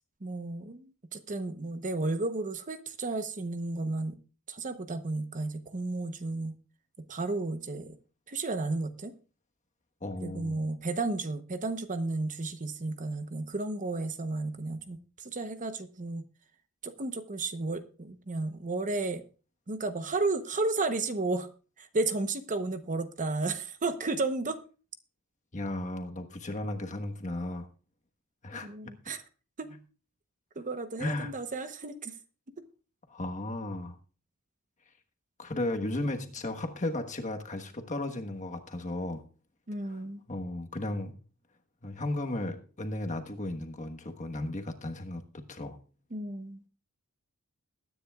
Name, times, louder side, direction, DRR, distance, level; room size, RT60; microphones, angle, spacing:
voice 1, 0.2-4.2 4.5-6.5 7.1-8.0 8.3-9.1 10.2-16.2 16.8-19.2 19.7-21.5 21.8-24.6 28.6-29.2 29.6-29.8 30.6-32.1 39.7-40.2 46.1-46.7, right 3 dB, 35° right, 0.9 m, -33 dB
voice 2, 10.0-10.6 25.5-27.7 28.4-28.9 31.0-31.3 33.1-34.0 35.4-39.2 39.8-40.0 40.3-41.2 41.8-45.8, left 1 dB, 35° left, 1.3 m, -35 dB
21.5 x 9.7 x 2.4 m
head